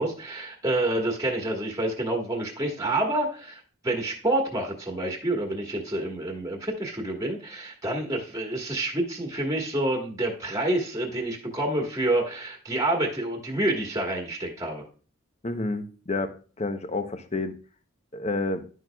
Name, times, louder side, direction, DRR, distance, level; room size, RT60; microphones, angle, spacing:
voice 1, 0.0-14.8, right 1 dB, 15° right, 1 dB, 1.4 m, -28 dB
voice 2, 15.4-16.3 16.6-17.5 18.1-18.6, left 2 dB, 30° left, 9 dB, 0.7 m, -29 dB
10.5 x 6.4 x 2.3 m, 0.37 s
head